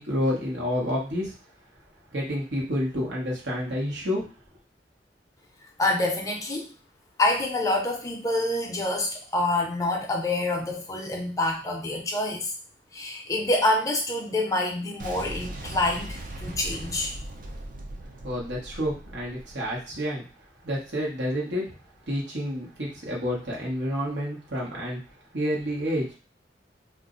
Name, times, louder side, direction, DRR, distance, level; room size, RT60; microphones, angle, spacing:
voice 1, 0.0-1.3 2.1-4.3 18.2-20.3 20.6-21.8 22.1-25.0 25.3-26.1, equal, 85° right, -4 dB, 1.0 m, -29 dB
voice 2, 5.8-6.7 7.2-12.5 12.9-17.1, left 2 dB, 20° left, 1 dB, 0.5 m, -26 dB
Boom, 15.0-19.9, right 1 dB, 50° right, 0.5 m, -39 dB
2.4 x 2.0 x 3.7 m, 0.36 s
head